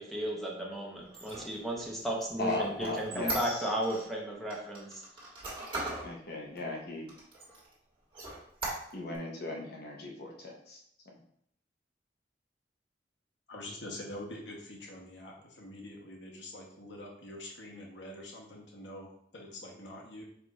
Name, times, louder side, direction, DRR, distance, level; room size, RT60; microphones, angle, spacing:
voice 1, 0.0-5.0, right 1 dB, ahead, -2 dB, 0.8 m, -34 dB
Squeak, 1.0-4.0 4.5-6.1 6.6-6.7 7.1-7.7 8.1-9.2, right 2 dB, 30° right, 1.4 m, -39 dB
voice 2, 2.4-3.7 6.0-7.1 8.9-10.8, left 2 dB, 60° left, 0 dB, 0.7 m, -37 dB
voice 3, 13.5-20.2, left 1 dB, 85° left, -1 dB, 1.0 m, -45 dB
4.7 x 2.4 x 4.0 m, 0.69 s
head